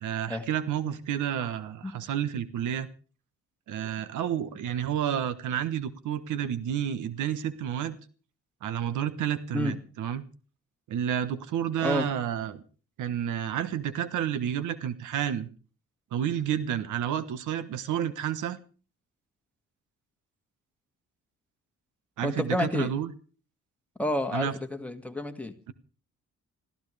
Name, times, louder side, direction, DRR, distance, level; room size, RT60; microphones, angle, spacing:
voice 1, 0.0-2.9 3.7-8.0 8.6-10.2 10.9-12.6 13.0-15.5 16.1-18.6 22.2-23.1 24.3-24.5, right 9 dB, 80° right, 13 dB, 1.3 m, -30 dB
voice 2, 22.2-22.9 24.0-25.5, left 1 dB, 5° left, 5 dB, 2.1 m, -29 dB
25.5 x 15.0 x 3.4 m, 0.38 s
cardioid pair, 90°, 30 cm